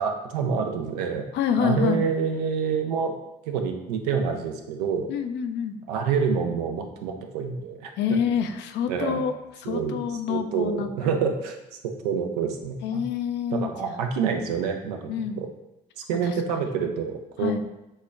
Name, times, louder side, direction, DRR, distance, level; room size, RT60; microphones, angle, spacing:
voice 1, 0.0-1.3 1.6-3.1 3.5-5.1 5.9-7.9 8.9-9.2 9.6-10.0 10.3-11.6 11.8-13.0 13.5-15.1 15.4-15.5 16.1-17.6, right 6 dB, 85° right, 4 dB, 0.5 m, -27 dB
voice 2, 1.3-2.0 5.1-5.8 8.0-10.9 12.8-14.0 15.1-15.4 16.2-16.3 17.4-17.6, left 7 dB, 65° left, 8 dB, 0.4 m, -27 dB
6.3 x 2.1 x 2.3 m, 0.92 s
hypercardioid pair, 50°, 20 cm